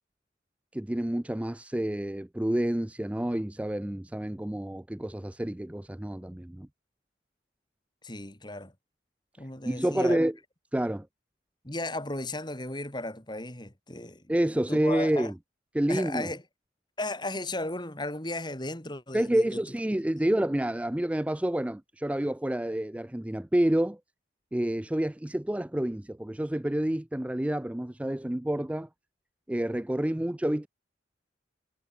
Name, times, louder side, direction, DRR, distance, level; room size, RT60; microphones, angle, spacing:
voice 1, 0.7-6.7 9.7-10.3 10.7-11.1 14.3-15.3 15.7-16.3 19.1-24.0 24.5-28.9 29.5-30.7, right 1 dB, 5° right, 0.3 m, -28 dB
voice 2, 8.0-8.7 9.4-10.2 11.6-14.3 14.7-15.3 15.9-16.4 17.0-19.6 30.2-30.3, left 2 dB, 25° left, 3.5 m, -35 dB
head